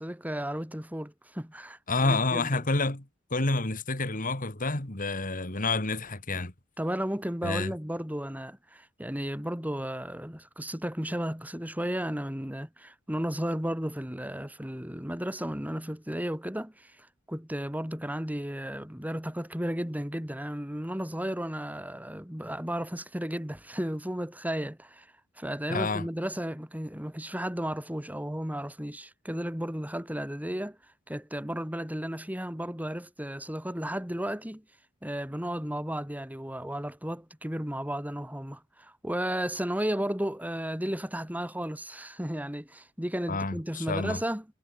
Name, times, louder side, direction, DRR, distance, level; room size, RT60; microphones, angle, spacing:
voice 1, 0.0-2.6 6.8-25.1 25.4-30.8 31.1-34.6 35.0-44.4, equal, 10° right, 3.3 m, -34 dB
voice 2, 1.9-3.0 3.3-6.5 7.4-7.7 25.7-26.1 43.3-44.2, left 3 dB, 40° left, 2.8 m, -29 dB
head